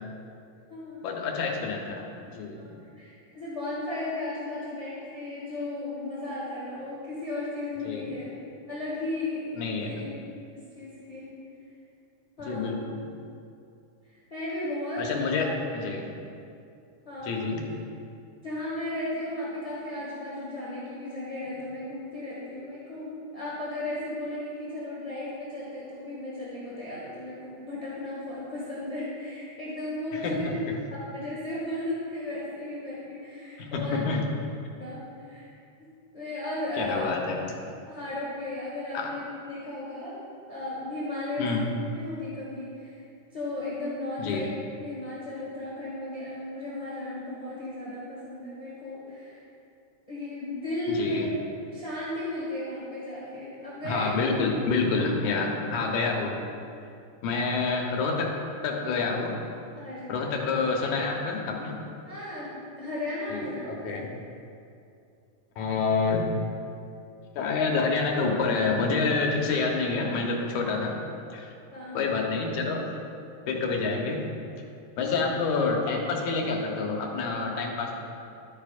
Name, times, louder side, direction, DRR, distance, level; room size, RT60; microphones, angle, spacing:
voice 1, 1.0-2.7 7.9-8.1 9.6-9.9 12.4-12.8 15.0-16.1 17.2-17.6 30.1-30.8 33.6-34.2 36.8-37.4 38.9-39.1 41.4-41.7 44.2-44.5 50.9-51.3 53.8-56.4 57.2-58.3 58.6-59.4 60.1-61.8 63.3-64.1 65.6-66.3 67.4-71.0 71.3-71.5 71.9-72.9 73.5-74.2 75.0-77.9, left 4 dB, 85° left, 0 dB, 2.4 m, -28 dB
voice 2, 2.9-8.4 8.7-10.1 10.7-11.3 12.4-12.8 14.1-15.5 17.0-17.5 18.4-30.6 31.1-34.0 34.8-35.5 36.1-37.1 37.9-40.2 40.5-41.6 41.9-43.0 43.3-49.4 50.1-51.3 51.7-54.1 59.8-60.4 62.1-64.0 71.7-72.2 75.0-75.2, left 1 dB, 15° left, -9 dB, 1.5 m, -35 dB
13.0 x 9.3 x 2.4 m, 2.5 s
omnidirectional pair, 3.3 m